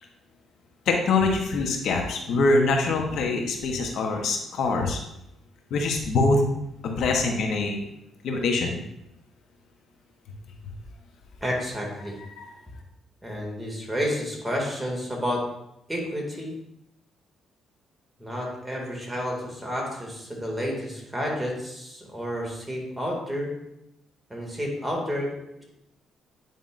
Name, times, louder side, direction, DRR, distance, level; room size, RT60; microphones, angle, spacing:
voice 1, 0.9-5.0 5.7-6.4 6.8-7.8 8.2-8.8 12.4-12.5, left 3 dB, 75° left, 2 dB, 1.0 m, -24 dB
voice 2, 11.4-12.2 13.2-15.4 15.9-16.5 18.2-23.5 24.3-25.3, equal, 5° right, -2 dB, 2.2 m, -30 dB
9.3 x 5.3 x 2.5 m, 0.84 s
cardioid pair, 90°, 0 cm